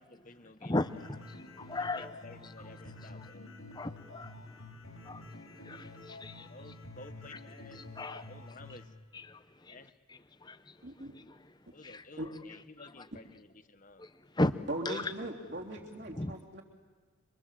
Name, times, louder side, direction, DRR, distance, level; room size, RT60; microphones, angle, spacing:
voice 1, 0.0-0.7 1.8-3.6 6.5-7.8 8.3-8.9 9.7-9.9 11.7-14.0, left 2 dB, 35° left, 1.3 m, -53 dB
voice 2, 0.6-2.1 3.8-4.6 5.0-6.5 8.0-8.3 9.1-9.8 10.4-10.8 11.1-11.4 11.8-12.0 14.0-14.5 14.8-15.1 16.1-16.3, left 2 dB, 20° left, 0.7 m, -36 dB
sound 1, 0.8-8.8, left 2 dB, 80° left, 5.1 m, -49 dB
voice 3, 10.8-11.1 12.2-12.3 14.7-16.6, right 1 dB, 55° right, 3.7 m, -39 dB
28.5 x 25.5 x 7.7 m
head